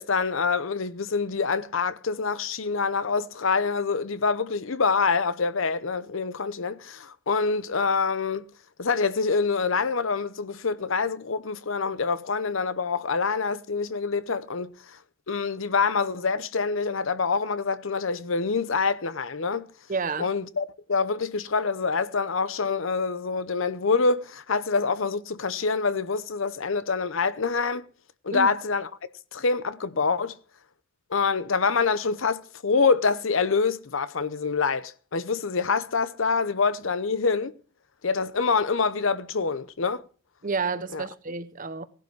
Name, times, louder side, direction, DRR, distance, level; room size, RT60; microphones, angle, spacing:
voice 1, 0.0-8.4 8.8-15.0 15.3-19.7 20.2-27.9 28.2-28.9 29.3-30.4 31.1-37.5 38.0-40.0 40.9-41.0, left 4 dB, 70° left, 0.8 m, -26 dB
voice 2, 19.9-20.3 28.3-28.5 40.4-41.9, right 4 dB, 40° right, 1.0 m, -30 dB
16.5 x 11.5 x 4.7 m
head